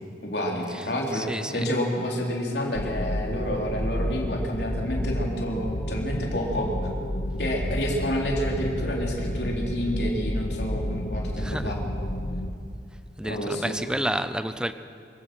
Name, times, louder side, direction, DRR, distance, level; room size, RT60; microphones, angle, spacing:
voice 1, 0.2-6.7 7.4-11.8 13.2-13.8, equal, 65° left, 3.6 m, -29 dB
voice 2, 1.1-1.7 11.4-11.8 13.2-14.7, right 1 dB, 5° right, 0.5 m, -30 dB
sound 1, 2.7-12.5, left 1 dB, 45° left, 1.2 m, -30 dB
26.0 x 16.0 x 6.2 m
head